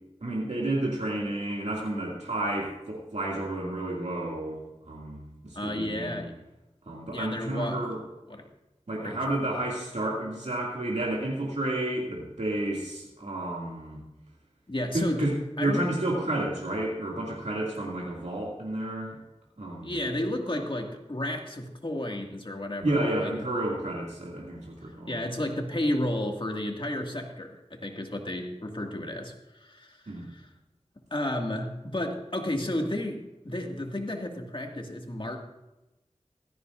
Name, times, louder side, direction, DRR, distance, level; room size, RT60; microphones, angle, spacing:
voice 1, 0.2-6.3 6.9-8.0 8.9-14.0 14.9-15.3 15.6-19.2 19.6-20.0 22.8-25.2 30.1-30.3, right 1 dB, 80° right, -4 dB, 2.4 m, -31 dB
voice 2, 5.6-6.3 7.1-8.0 8.3-8.4 9.0-9.2 14.7-15.3 15.6-15.8 19.8-23.3 25.1-30.5 31.1-35.4, left 1 dB, 45° left, 2 dB, 2.1 m, -32 dB
16.0 x 14.0 x 2.6 m, 0.99 s
wide cardioid pair, 45°, 11 cm